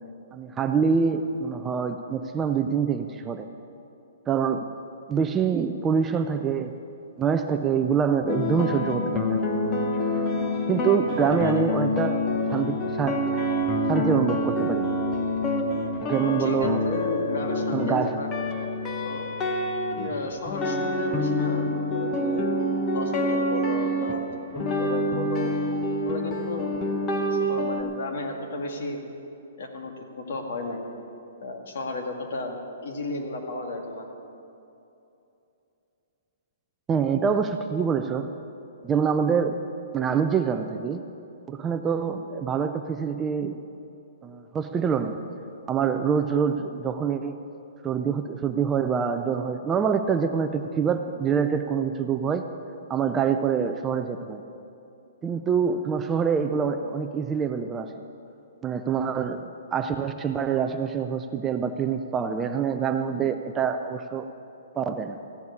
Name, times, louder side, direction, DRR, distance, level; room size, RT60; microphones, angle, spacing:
voice 1, 0.3-3.5 4.3-4.7 5.1-6.7 7.2-9.4 10.7-12.2 12.5-13.2 13.9-14.9 16.1-16.8 17.7-18.2 36.9-38.3 38.8-39.6 39.9-41.0 41.5-43.6 44.2-45.2 45.7-47.4 47.8-52.4 52.9-54.4 55.2-57.9 58.6-59.4 59.7-64.3 64.8-65.2, right 6 dB, 10° right, 7 dB, 0.4 m, -25 dB
sound 1, 8.3-27.8, left 1 dB, 15° left, 0.9 m, -27 dB
voice 2, 11.1-11.6 16.4-18.3 19.0-19.3 19.9-22.5 22.9-25.5 26.0-26.8 27.3-29.0 29.6-30.9 31.4-32.6 32.8-34.1, left 2 dB, 55° left, 2 dB, 2.1 m, -33 dB
15.0 x 7.1 x 9.7 m, 2.7 s
hypercardioid pair, 175°, 0 cm